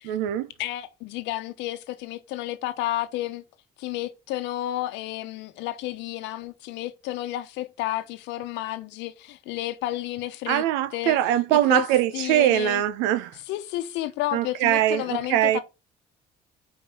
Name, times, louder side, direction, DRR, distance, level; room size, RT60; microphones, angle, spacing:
voice 1, 0.1-0.5 10.5-13.3 14.3-15.6, right 13 dB, 85° right, 0.8 m, -22 dB
voice 2, 0.6-3.4 3.8-10.6 10.9-11.2 11.5-11.9 12.1-12.8 13.5-15.6, left 15 dB, 80° left, 1.0 m, -31 dB
5.5 x 4.6 x 6.1 m
supercardioid pair, 65°, 18 cm